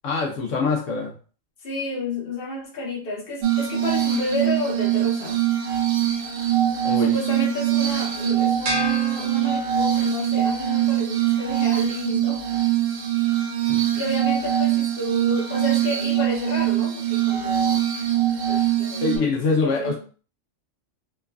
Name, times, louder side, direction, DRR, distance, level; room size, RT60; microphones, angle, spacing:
voice 1, 0.0-1.1 6.8-7.1 13.7-13.9 19.0-20.0, left 4 dB, 75° left, 0 dB, 0.9 m, -24 dB
voice 2, 1.6-5.4 7.0-12.4 13.7-17.8 18.5-20.0, left 1 dB, 50° left, -2 dB, 1.0 m, -31 dB
Glass, 3.4-19.2, right 11 dB, 80° right, 1.0 m, -23 dB
sound 1, 8.6-10.1, left 1 dB, 55° right, 0.6 m, -31 dB
3.0 x 2.3 x 2.2 m, 0.40 s
omnidirectional pair, 1.3 m